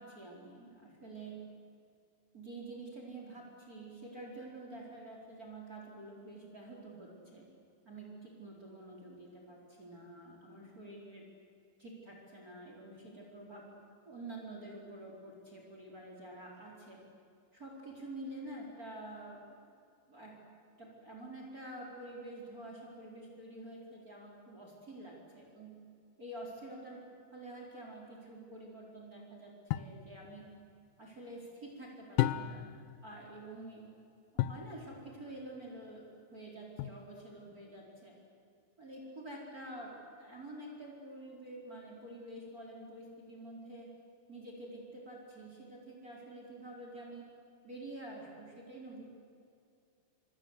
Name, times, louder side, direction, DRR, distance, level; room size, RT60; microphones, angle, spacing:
voice 1, 0.0-1.4 2.3-7.4 7.8-11.2 11.8-13.7 14.1-17.0 17.5-19.7 20.1-20.4 20.8-25.7 26.2-30.5 31.0-33.8 34.3-36.0 36.3-38.1 38.8-39.9 40.2-43.9 44.3-47.2 47.6-49.0, right 1 dB, 25° right, -1 dB, 4.5 m, -48 dB
sound 1, 29.7-30.0 32.2-32.8 34.4-34.7 36.8-37.3, left 14 dB, 75° left, 2.1 m, -33 dB
26.5 x 26.5 x 8.1 m, 2.5 s
omnidirectional pair, 4.2 m